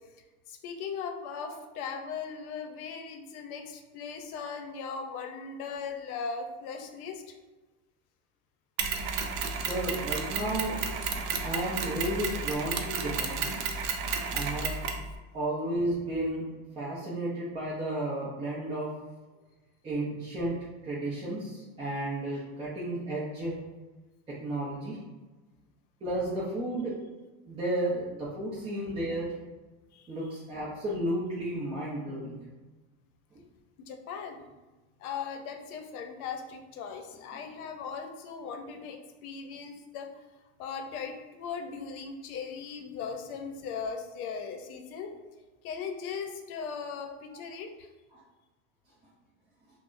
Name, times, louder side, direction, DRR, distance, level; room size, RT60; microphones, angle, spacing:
voice 1, 0.5-7.2 29.9-30.1 33.9-34.5 35.0-40.1 40.6-45.1 45.6-47.9, left 5 dB, 85° left, 5 dB, 0.7 m, -38 dB
Mechanisms, 8.8-15.1, right 5 dB, 60° right, 0.6 m, -32 dB
voice 2, 9.6-10.8 11.4-13.5 14.3-14.8 15.3-16.4 16.8-18.9 19.8-20.6 20.8-23.6 24.4-25.0 26.0-26.9 27.5-29.3 30.1-32.4, right 1 dB, 15° right, -8 dB, 0.4 m, -32 dB
5.7 x 2.0 x 2.5 m, 1.2 s
supercardioid pair, 145°, 42 cm